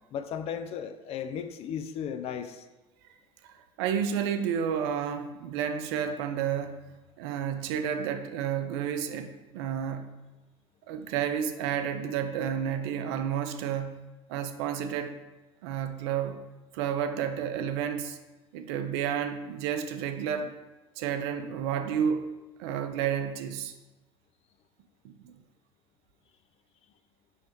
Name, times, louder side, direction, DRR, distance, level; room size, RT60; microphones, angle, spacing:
voice 1, 0.1-2.6, left 8 dB, 45° left, 9 dB, 0.4 m, -35 dB
voice 2, 3.5-6.8 7.2-10.2 10.9-14.0 14.3-15.1 15.6-16.4 16.7-18.2 18.5-20.5 21.0-22.3 22.6-23.7 25.0-25.3, right 8 dB, 70° right, 9 dB, 0.4 m, -31 dB
5.5 x 3.1 x 3.0 m, 1.1 s
hypercardioid pair, 65°, 14 cm